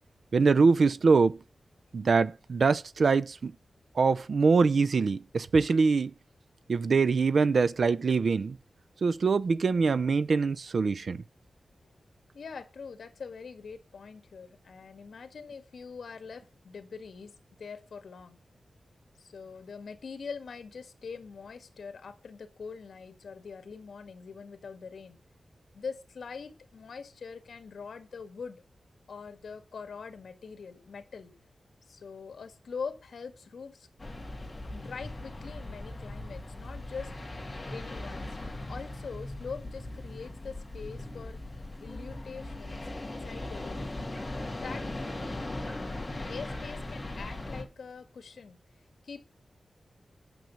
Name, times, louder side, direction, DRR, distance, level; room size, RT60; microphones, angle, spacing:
voice 1, 0.3-1.4 1.9-3.5 4.0-6.1 6.7-8.6 9.0-11.2, right 4 dB, 60° right, 0.5 m, -24 dB
voice 2, 12.3-18.4 19.2-25.2 25.7-28.6 29.1-31.3 31.9-33.9 34.7-37.1 37.7-38.3 38.7-41.4 41.8-43.9 44.6-44.9 46.3-48.6 49.0-49.3, left 5 dB, 80° left, 1.8 m, -43 dB
sound 1, 34.0-47.6, left 2 dB, 20° left, 2.7 m, -39 dB
9.3 x 6.6 x 6.9 m
wide cardioid pair, 155°, 0 cm